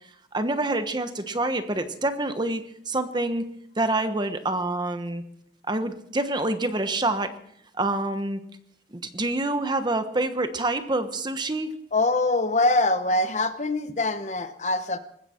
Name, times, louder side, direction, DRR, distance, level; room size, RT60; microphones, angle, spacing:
voice 1, 0.3-5.2 5.7-7.3 7.8-8.4 8.9-11.7, right 2 dB, 25° right, 9 dB, 1.1 m, -27 dB
voice 2, 11.9-15.0, left 2 dB, 40° left, 10 dB, 0.9 m, -23 dB
20.0 x 15.5 x 4.4 m, 0.71 s
head